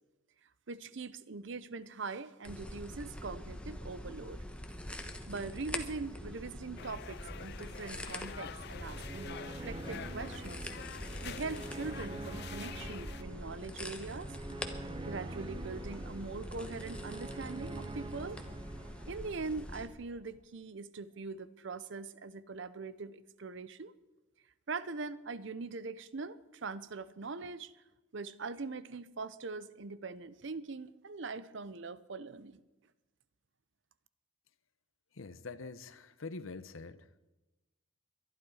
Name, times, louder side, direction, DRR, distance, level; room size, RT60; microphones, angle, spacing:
voice 1, 0.7-4.4 5.3-10.7 11.2-14.3 15.0-18.4 19.1-23.9 24.7-27.7 28.1-32.6, right 4 dB, 60° right, 16 dB, 0.7 m, -42 dB
sound 1, 2.4-19.9, left 1 dB, 5° left, 1.1 m, -44 dB
sound 2, 6.8-13.2, left 9 dB, 55° left, 0.4 m, -48 dB
sound 3, 8.5-19.9, right 2 dB, 25° right, 0.6 m, -46 dB
voice 2, 35.1-37.1, left 3 dB, 75° left, 14 dB, 0.8 m, -45 dB
22.5 x 11.5 x 4.8 m, 1.1 s
head